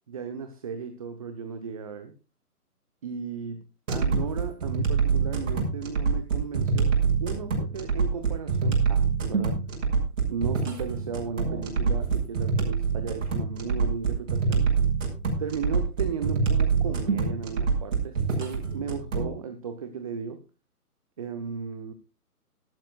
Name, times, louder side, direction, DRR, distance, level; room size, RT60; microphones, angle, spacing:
voice 1, 0.1-2.1 3.0-3.6 3.9-9.6 10.3-14.7 15.4-20.4 21.2-21.9, right 6 dB, 25° right, 8 dB, 0.8 m, -35 dB
sound 1, 3.9-19.3, right 5 dB, 50° right, 5.7 m, -25 dB
19.5 x 12.0 x 2.4 m, 0.29 s
figure-of-eight pair, 140°, 46 cm